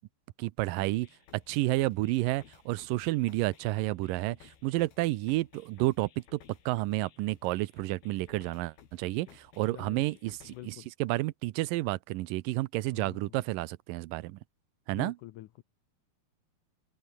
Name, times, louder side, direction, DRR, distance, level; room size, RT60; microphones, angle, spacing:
voice 1, 0.4-1.1 1.3-14.4 14.9-15.1, right 19 dB, 80° right, 2.0 m, -31 dB
sound 1, 0.8-10.8, left 9 dB, 70° left, 4.5 m, -58 dB
voice 2, 9.7-10.0 10.5-10.9 12.9-13.4 14.9-15.6, left 16 dB, 85° left, 1.7 m, -46 dB
open air
omnidirectional pair, 4.6 m